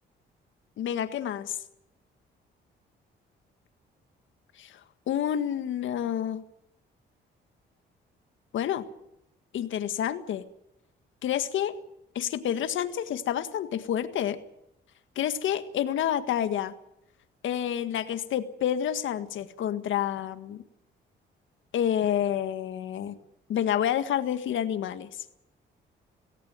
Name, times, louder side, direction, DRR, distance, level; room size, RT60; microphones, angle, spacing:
voice 1, 0.8-1.6 4.6-4.8 5.1-6.4 8.5-8.8 9.5-10.4 11.2-11.7 12.2-14.4 15.2-16.7 17.4-20.6 21.7-23.2 23.5-25.3, left 10 dB, 75° left, 10 dB, 1.8 m, -29 dB
18.5 x 17.0 x 9.6 m, 0.81 s
cardioid pair, 90°, 20 cm